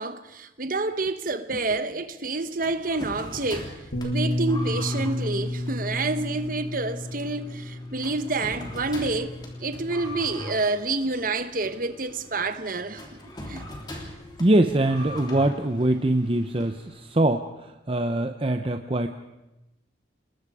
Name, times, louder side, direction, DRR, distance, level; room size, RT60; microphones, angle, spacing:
voice 1, 0.0-3.7 4.0-13.0 13.5-13.6, right 3 dB, 45° right, 1.1 m, -28 dB
sound 1, 2.6-17.3, left 1 dB, 20° left, 3.2 m, -42 dB
Bass guitar, 3.9-10.2, left 1 dB, 75° left, 2.8 m, -32 dB
voice 2, 14.4-19.1, right 1 dB, 30° right, 0.7 m, -23 dB
28.5 x 20.5 x 4.9 m
head